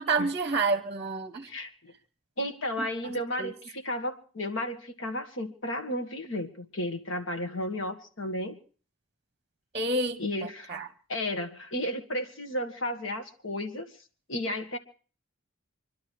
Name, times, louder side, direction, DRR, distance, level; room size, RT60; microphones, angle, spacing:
voice 1, 0.0-1.5 2.8-3.5 9.7-10.9, right 3 dB, 30° right, 0.9 m, -30 dB
voice 2, 1.5-1.9 2.4-8.6 10.2-10.7 11.1-13.9 14.3-14.8, left 1 dB, 70° left, 1.9 m, -33 dB
26.0 x 12.0 x 4.7 m
head